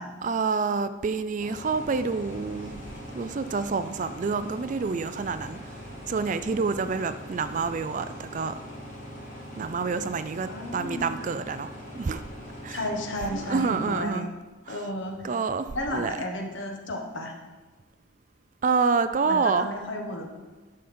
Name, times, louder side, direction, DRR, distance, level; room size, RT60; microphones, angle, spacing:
voice 1, 0.2-2.8 3.1-5.6 6.1-8.6 9.6-11.7 11.9-12.2 12.6-12.8 13.3-14.3 14.7-14.8 15.2-16.2 18.6-19.7, right 4 dB, 40° right, 12 dB, 0.3 m, -27 dB
sound 1, 1.4-14.0, equal, 35° left, 1.9 m, -42 dB
voice 2, 10.4-11.0 12.7-14.3 14.7-15.3 15.7-17.4 19.2-20.3, left 1 dB, 65° left, 2 dB, 1.3 m, -33 dB
10.0 x 6.4 x 4.3 m, 1.2 s
head